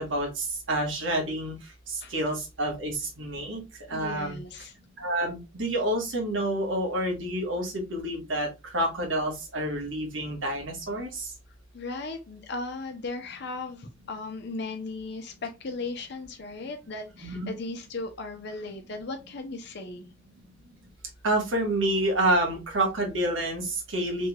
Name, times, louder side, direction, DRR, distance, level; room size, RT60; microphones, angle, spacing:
voice 1, 0.0-1.5 1.9-3.6 3.9-4.4 5.0-8.5 8.7-11.3 17.2-17.5 21.2-24.3, right 1 dB, 80° right, 1 dB, 1.3 m, -28 dB
voice 2, 3.9-4.7 11.7-20.1, left 3 dB, 60° left, 5 dB, 0.6 m, -37 dB
3.4 x 3.3 x 2.2 m, 0.26 s
head